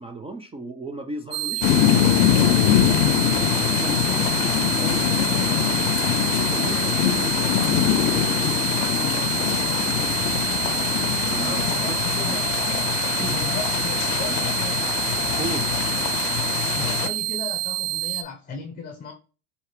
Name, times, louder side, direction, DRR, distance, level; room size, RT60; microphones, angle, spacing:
voice 1, 0.0-9.4 11.3-12.0 12.3-12.4 13.2-13.5 15.4-15.7, right 2 dB, 15° right, 5 dB, 0.3 m, -37 dB
sound 1, 1.3-18.2, right 18 dB, 45° right, 0.7 m, -28 dB
sound 2, 1.6-17.1, left 12 dB, 85° left, 0.6 m, -23 dB
voice 2, 11.4-12.4 13.3-14.9 16.7-19.1, left 4 dB, 20° left, 4 dB, 0.8 m, -36 dB
5.6 x 2.8 x 3.2 m, 0.34 s
supercardioid pair, 90°, 48 cm